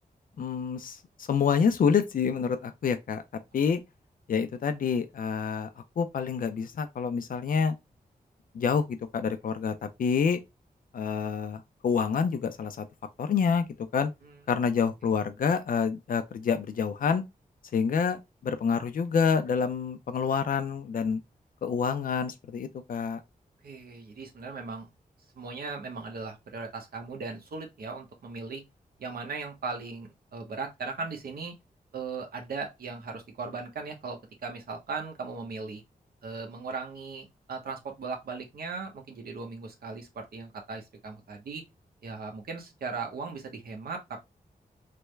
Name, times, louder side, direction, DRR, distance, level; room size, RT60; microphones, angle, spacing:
voice 1, 0.4-3.2 3.5-3.8 4.3-7.8 8.5-10.4 10.9-12.9 13.2-14.1 14.5-17.2 17.7-21.2 21.6-23.2, left 6 dB, 65° left, 0.5 m, -27 dB
voice 2, 23.6-24.9 25.4-28.6 29.0-31.5 31.9-35.8 36.2-41.6 42.0-44.2, right 4 dB, 85° right, 0.9 m, -38 dB
3.4 x 2.1 x 3.1 m
wide cardioid pair, 110°, 15 cm